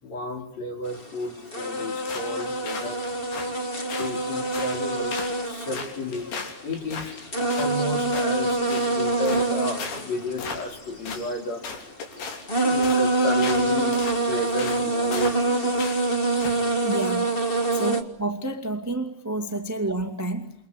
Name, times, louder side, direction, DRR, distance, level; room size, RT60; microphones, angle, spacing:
voice 1, 0.0-3.0 3.9-5.2 5.4-6.3 6.6-11.8 12.6-14.0 14.3-16.1 17.7-17.8, left 2 dB, 45° left, 3 dB, 5.3 m, -33 dB
sound 1, 1.0-1.1 1.5-6.6 6.9-11.4 12.2-12.3 12.5-18.0, right 2 dB, 70° left, 0.5 m, -25 dB
sound 2, 2.1-2.4 2.7-3.5 3.9-4.2 4.5-4.8 5.1-5.4 5.7-7.7 8.1-8.3 8.7-8.9 9.3-9.5 9.8-10.1 10.4-10.8 11.1-11.3 11.6-12.5 12.8-13.0 13.4-13.7 13.9-14.2 14.6-14.8 15.1-15.4 15.8-16.0 16.4-16.6, left 5 dB, 90° left, 5.5 m, -35 dB
voice 2, 16.8-17.3 17.7-20.5, right 2 dB, 10° right, 6 dB, 1.1 m, -29 dB
29.0 x 24.0 x 8.4 m, 0.75 s
omnidirectional pair, 4.4 m